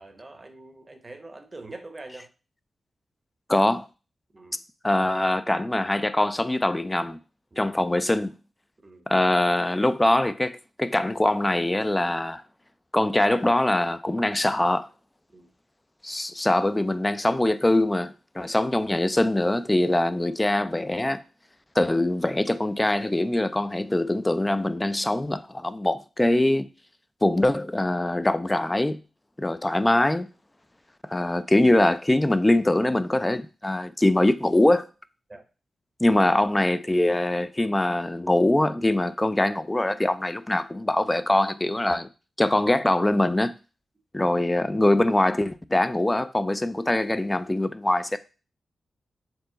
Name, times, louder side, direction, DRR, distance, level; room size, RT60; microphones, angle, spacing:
voice 1, 0.0-2.3 4.3-4.6 7.5-7.7 8.8-9.0 15.3-15.5 35.3-35.4, right 2 dB, 35° right, 0.8 m, -44 dB
voice 2, 3.5-3.9 4.8-7.2 7.6-8.3 9.1-12.4 12.9-14.9 16.0-21.2 21.8-26.7 27.2-29.0 29.4-30.3 31.1-34.9 36.0-42.1 42.4-43.5 44.1-48.2, left 1 dB, 20° left, 0.4 m, -23 dB
4.5 x 2.1 x 3.8 m
supercardioid pair, 45°, 0 cm